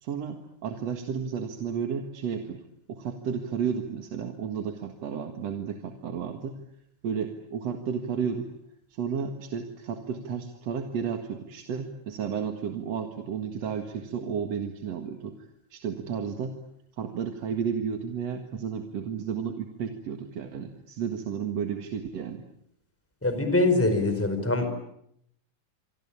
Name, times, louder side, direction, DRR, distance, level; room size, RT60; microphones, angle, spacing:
voice 1, 0.0-2.6 2.9-6.6 7.0-8.5 8.9-16.6 17.0-22.4, right 7 dB, 60° right, 5 dB, 2.8 m, -32 dB
voice 2, 23.2-24.7, left 2 dB, 5° left, 8 dB, 4.4 m, -23 dB
27.0 x 24.5 x 8.7 m, 0.74 s
omnidirectional pair, 3.4 m